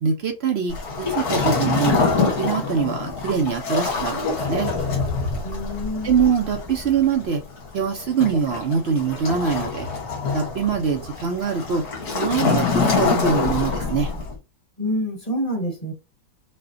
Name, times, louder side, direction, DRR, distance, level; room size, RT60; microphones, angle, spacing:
voice 1, 0.0-4.7 6.0-7.4 7.7-9.9 10.3-11.8 12.1-12.7 13.0-14.1, right 6 dB, 60° right, 0.7 m, -23 dB
Waves surf, 0.7-14.3, left 4 dB, 85° left, 1.8 m, -25 dB
voice 2, 5.4-6.2 14.8-15.9, equal, 25° left, 1.4 m, -27 dB
5.4 x 2.2 x 2.6 m
omnidirectional pair, 1.6 m